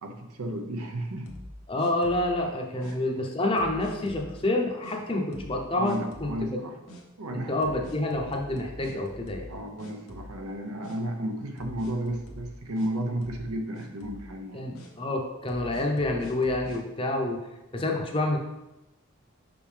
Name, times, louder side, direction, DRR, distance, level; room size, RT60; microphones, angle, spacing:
voice 1, 0.0-1.3 2.8-3.0 5.8-6.8 7.2-7.5 9.5-14.6, right 1 dB, 85° right, 4 dB, 0.8 m, -33 dB
sound 1, 1.3-2.4 2.8-3.0 3.6-4.3 4.8-5.0 5.3-5.6 5.8-6.4 6.9-7.0 7.6-9.5 9.8-10.5 10.8-11.0 11.6-12.9 13.2-13.5 13.7-14.3 14.8-14.9 15.5-16.8, left 1 dB, 75° left, 1.0 m, -44 dB
voice 2, 1.7-6.5 7.3-9.5 14.5-17.4 17.7-18.4, left 2 dB, 25° left, 1 dB, 0.7 m, -28 dB
5.8 x 5.2 x 3.4 m, 1.0 s
head